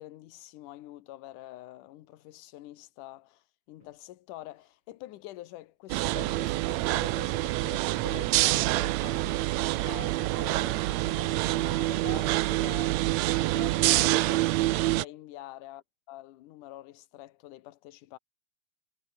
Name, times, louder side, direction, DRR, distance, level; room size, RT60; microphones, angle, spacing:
voice 1, 0.0-13.0 13.4-15.8 16.1-18.2, left 15 dB, 75° left, 2.6 m, -46 dB
sound 1, 3.8-4.0 4.5-4.7 5.8-5.9 6.3-14.7, left 2 dB, 40° left, 8.5 m, -60 dB
sound 2, 5.9-15.0, right 18 dB, 85° right, 1.5 m, -26 dB
omnidirectional pair, 3.8 m